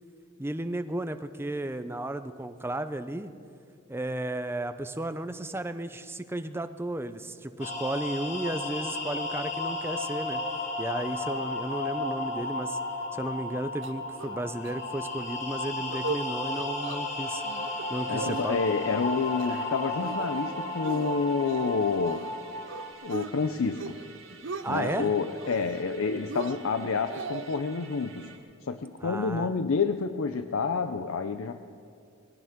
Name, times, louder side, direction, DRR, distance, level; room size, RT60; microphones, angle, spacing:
voice 1, 0.4-3.3 3.9-10.4 10.8-12.8 13.1-17.4 17.9-18.6 24.6-25.1 29.0-29.5, right 1 dB, 10° right, 10 dB, 0.5 m, -34 dB
sound 1, 7.6-22.9, left 2 dB, 35° left, 1.6 m, -34 dB
sound 2, 13.8-14.4 14.6-14.7 15.1-15.4 15.8-16.2 16.5-17.0 17.4-17.8 18.2-18.8 19.2-19.7 20.0-20.4 20.8-22.3 22.7-23.3 23.7-24.1 24.3-25.0 25.4-25.9 26.3-27.6, right 3 dB, 65° right, 0.7 m, -39 dB
Musical instrument, 16.7-28.4, right 3 dB, 85° right, 1.7 m, -51 dB
voice 2, 18.1-22.3 23.0-24.0 24.7-28.3 28.6-31.6, left 4 dB, 90° left, 9 dB, 0.5 m, -29 dB
22.0 x 17.5 x 3.7 m, 2.4 s
head